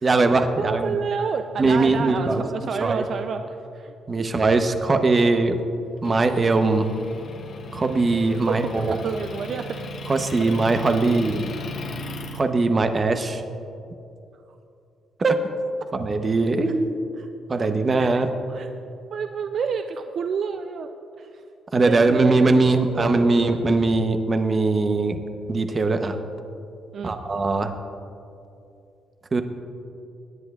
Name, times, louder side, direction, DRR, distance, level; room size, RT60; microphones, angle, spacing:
voice 1, 0.0-1.0 1.6-3.1 4.1-5.6 6.0-6.9 7.7-9.0 10.1-11.4 12.3-13.4 15.2-15.4 15.9-17.0 17.5-18.3 21.7-25.2 25.5-26.2 27.0-27.7 29.3-29.4, right 3 dB, 30° right, 7 dB, 0.8 m, -21 dB
voice 2, 0.6-3.9 4.2-4.3 8.3-8.7 9.0-9.8 10.3-10.4 17.2-17.3 17.6-18.1 18.5-18.7 19.1-20.9 21.2-21.3 21.7-23.7 26.9-27.1, right 6 dB, 55° right, 7 dB, 0.4 m, -29 dB
Motor vehicle (road) / Engine, 6.0-12.4, left 2 dB, 60° left, 1.1 m, -36 dB
22.0 x 10.0 x 2.4 m, 2.6 s
cardioid pair, 90°, 0 cm